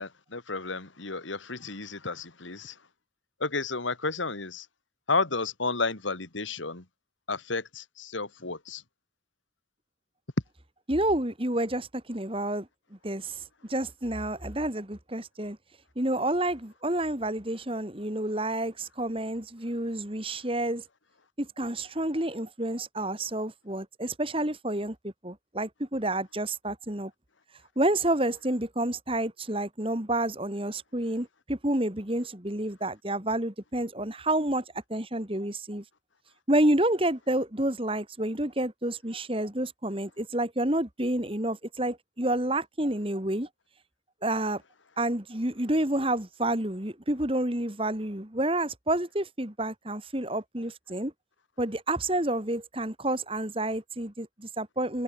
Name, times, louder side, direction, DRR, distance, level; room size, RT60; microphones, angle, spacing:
voice 1, 0.0-2.8 3.4-4.7 5.1-6.9 7.3-8.8, left 3 dB, 80° left, 2.6 m, -32 dB
voice 2, 10.9-12.7 13.0-13.4 13.7-15.6 16.0-20.8 21.4-27.1 27.8-34.6 34.9-35.8 36.5-43.5 44.2-44.6 45.0-51.1 51.6-55.0, right 1 dB, 30° right, 2.5 m, -29 dB
head